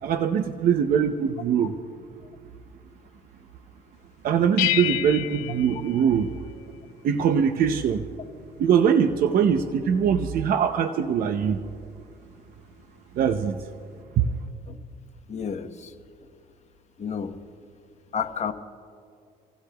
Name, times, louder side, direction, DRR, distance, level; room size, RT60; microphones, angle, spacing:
voice 1, 0.0-1.7 4.2-6.3 7.0-8.0 8.6-11.6 13.2-13.6 14.2-14.3, right 7 dB, 60° right, 7 dB, 0.7 m, -22 dB
sound 1, 4.6-6.8, left 14 dB, 85° left, 0.6 m, -29 dB
voice 2, 15.3-15.9 17.0-17.3 18.1-18.5, left 7 dB, 40° left, 7 dB, 1.0 m, -30 dB
29.5 x 16.0 x 2.3 m, 2.3 s
cardioid pair, 110°, 17 cm